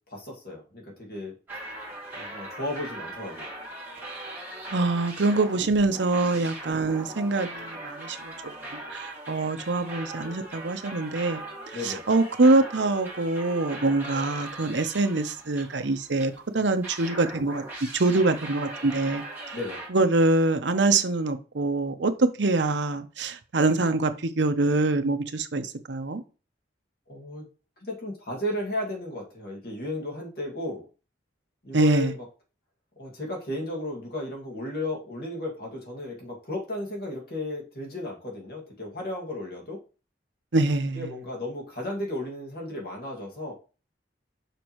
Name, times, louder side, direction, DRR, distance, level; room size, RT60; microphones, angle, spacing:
voice 1, 0.1-1.4 2.2-3.5 11.7-12.0 19.5-19.8 27.1-27.5 27.8-30.9 31.6-32.3 33.0-39.8 40.9-43.5, left 1 dB, 55° left, 2.2 m, -34 dB
sound 1, 1.5-16.4 16.8-19.9, right 1 dB, 10° right, 2.2 m, -40 dB
voice 2, 4.7-17.6 17.9-19.6 19.9-26.2 31.7-32.1 40.5-41.1, right 2 dB, 70° right, 0.8 m, -25 dB
6.7 x 5.3 x 3.1 m
head